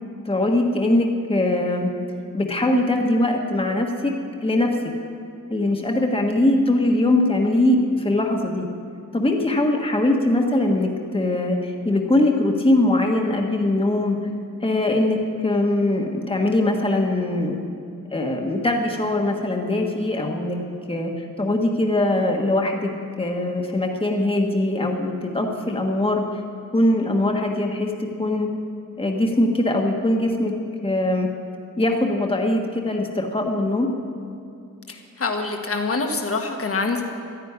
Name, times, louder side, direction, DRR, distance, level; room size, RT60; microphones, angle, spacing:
voice 1, 0.2-1.9 2.3-4.1 4.4-4.7 5.5-8.7 9.1-14.2 14.6-17.6 18.1-20.6 20.9-21.1 21.4-22.9 23.2-26.2 26.7-28.5 29.0-30.5 30.8-31.3 31.8-33.9, left 1 dB, 15° left, 1 dB, 1.5 m, -21 dB
voice 2, 34.9-37.0, left 3 dB, 45° left, 3 dB, 1.6 m, -25 dB
12.5 x 11.0 x 9.7 m, 2.6 s
wide cardioid pair, 115°, 33 cm